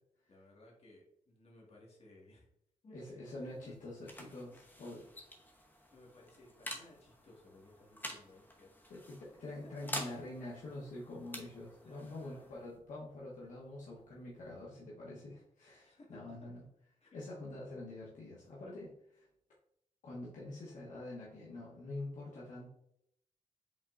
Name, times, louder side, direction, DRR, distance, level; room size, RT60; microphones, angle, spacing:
voice 1, 0.3-2.5 2.8-3.7 4.3-5.1 5.9-9.0 9.4-9.9 11.8-12.6 15.8-16.5 17.0-17.3, left 2 dB, 50° left, -3 dB, 1.7 m, -60 dB
voice 2, 2.9-5.0 8.9-16.6 17.1-19.2 20.0-22.7, left 2 dB, 75° left, -6 dB, 1.1 m, -46 dB
sound 1, 3.3-14.6, left 1 dB, 15° left, 0.9 m, -49 dB
5.3 x 3.6 x 2.5 m, 0.75 s
cardioid pair, 80°, 13 cm